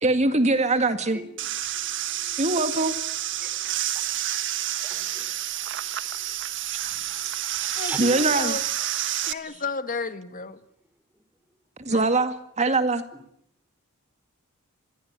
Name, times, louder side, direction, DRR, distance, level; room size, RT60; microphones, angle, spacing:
voice 1, 0.0-1.2 2.4-2.9 8.0-8.6 11.8-13.0, right 2 dB, 30° right, 9 dB, 2.1 m, -22 dB
voice 2, 1.1-1.5 2.2-2.3 3.4-4.0 4.8-5.3 7.8-8.0, right 1 dB, 5° right, 10 dB, 3.8 m, -41 dB
sound 1, 1.4-9.3, right 12 dB, 60° right, 1.5 m, -29 dB
voice 3, 7.8-8.6 9.2-10.6 11.9-12.2, left 4 dB, 40° left, 10 dB, 1.9 m, -33 dB
26.5 x 21.0 x 9.9 m, 0.71 s
head